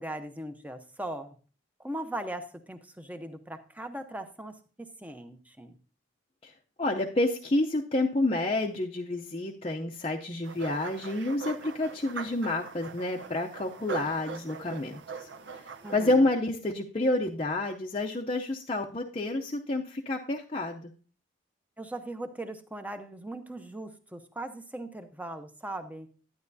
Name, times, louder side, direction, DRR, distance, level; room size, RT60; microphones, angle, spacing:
voice 1, 0.0-1.4 1.8-5.8 15.8-16.3 21.8-26.1, right 1 dB, 10° right, 8 dB, 0.7 m, -39 dB
voice 2, 6.8-20.9, left 2 dB, 30° left, 0 dB, 0.6 m, -29 dB
sound 1, 10.4-16.1, right 5 dB, 60° right, 0.7 m, -41 dB
12.0 x 9.5 x 2.7 m, 0.38 s
head